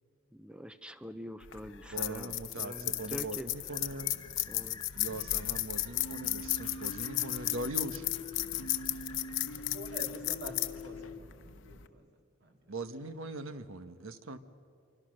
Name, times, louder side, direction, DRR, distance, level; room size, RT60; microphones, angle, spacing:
voice 1, 0.3-3.5 4.5-4.8, equal, 5° right, 11 dB, 0.6 m, -44 dB
sound 1, 1.4-11.9, left 15 dB, 60° left, 0.9 m, -35 dB
voice 2, 1.9-4.1 5.0-8.1 12.7-14.4, right 2 dB, 75° right, 10 dB, 1.3 m, -41 dB
sound 2, 2.6-10.1, left 5 dB, 20° left, 1.5 m, -54 dB
sound 3, 6.0-11.2, left 1 dB, 80° left, 1.2 m, -45 dB
voice 3, 9.7-12.0 12.4-12.5, right 1 dB, 55° right, 3 dB, 2.7 m, -47 dB
26.5 x 24.5 x 6.5 m, 2.3 s
head